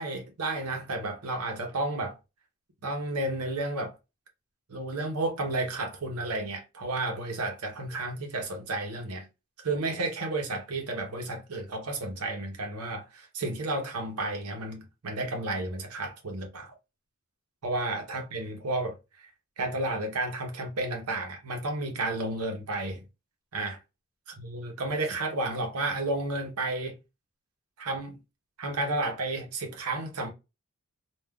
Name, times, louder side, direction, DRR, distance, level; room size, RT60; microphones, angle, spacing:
voice 1, 0.0-2.2 2.8-3.9 4.7-9.3 9.6-16.7 17.6-19.3 19.6-23.0 23.5-23.8 24.4-27.0 27.8-28.2 28.6-30.3, right 2 dB, 90° right, 0.8 m, -32 dB
3.5 x 2.3 x 2.2 m
head